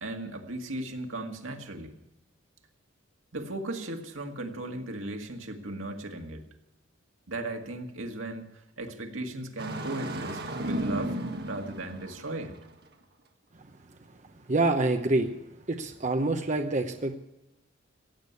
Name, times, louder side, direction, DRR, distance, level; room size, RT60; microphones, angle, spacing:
voice 1, 0.0-2.0 3.3-6.5 7.3-11.2 11.5-12.5, right 2 dB, 85° right, 4 dB, 2.0 m, -36 dB
Engine starting, 9.6-12.6, right 1 dB, 55° right, 1.7 m, -34 dB
voice 2, 14.5-15.3 15.7-17.2, right 2 dB, 35° right, 6 dB, 0.8 m, -26 dB
16.5 x 8.2 x 9.5 m, 0.92 s
head